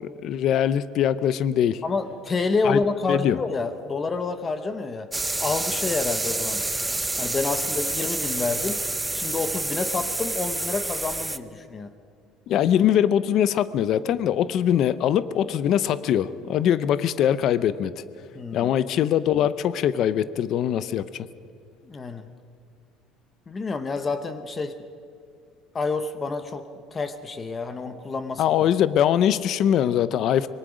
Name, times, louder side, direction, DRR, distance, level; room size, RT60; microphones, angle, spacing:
voice 1, 0.0-1.8 2.6-2.8 3.1-3.4 12.5-18.0 18.5-21.3 28.4-30.5, left 10 dB, 45° left, 15 dB, 0.6 m, -22 dB
voice 2, 1.8-5.1 5.4-6.6 7.2-8.8 9.1-11.9 18.3-18.7 21.8-22.3 23.5-24.8 25.7-26.6 26.9-28.4, left 4 dB, 20° left, 10 dB, 0.9 m, -28 dB
sound 1, 5.1-11.4, right 2 dB, 5° right, 0.5 m, -28 dB
25.5 x 22.5 x 5.1 m, 2.3 s
cardioid pair, 165°, 0 cm